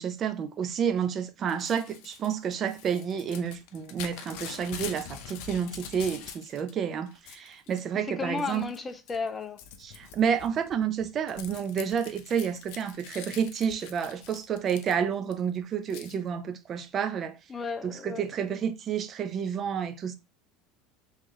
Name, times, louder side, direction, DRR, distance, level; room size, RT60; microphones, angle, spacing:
voice 1, 0.0-8.7 9.8-17.4 17.8-20.1, right 7 dB, 40° right, 0.6 m, -30 dB
Crumpling crinkling / Tearing, 1.5-6.7 7.1-7.8 8.4-8.8 9.1-15.3 15.9-16.2, left 9 dB, 70° left, 0.6 m, -44 dB
voice 2, 7.9-9.6 17.5-18.2, left 4 dB, 25° left, 0.7 m, -34 dB
3.6 x 3.2 x 3.1 m
supercardioid pair, 105°, 0 cm